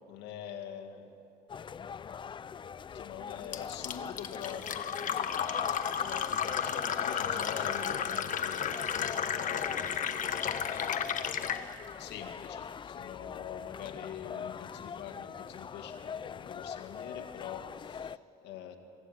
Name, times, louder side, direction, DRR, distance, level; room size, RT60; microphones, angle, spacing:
voice 1, 0.1-1.1 2.9-10.3 12.0-18.8, left 8 dB, 90° left, 5 dB, 2.1 m, -45 dB
sound 1, 1.5-18.2, left 7 dB, 30° left, 0.4 m, -42 dB
Fill (with liquid), 3.5-11.6, left 8 dB, 50° left, 1.3 m, -33 dB
25.5 x 15.0 x 9.3 m, 2.7 s
cardioid pair, 110°, 17 cm